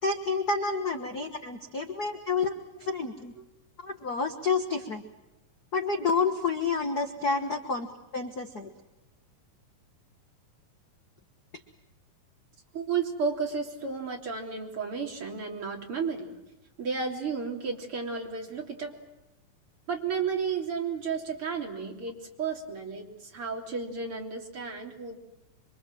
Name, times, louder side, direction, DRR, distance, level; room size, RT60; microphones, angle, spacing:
voice 1, 0.0-2.5 2.8-3.3 3.8-5.0 5.7-7.9 8.1-8.7, left 4 dB, 60° left, 6 dB, 1.0 m, -29 dB
voice 2, 12.7-16.4 16.8-18.9 19.9-25.2, right 5 dB, 40° right, 1 dB, 3.9 m, -33 dB
27.0 x 24.5 x 7.6 m, 0.97 s
omnidirectional pair, 4.0 m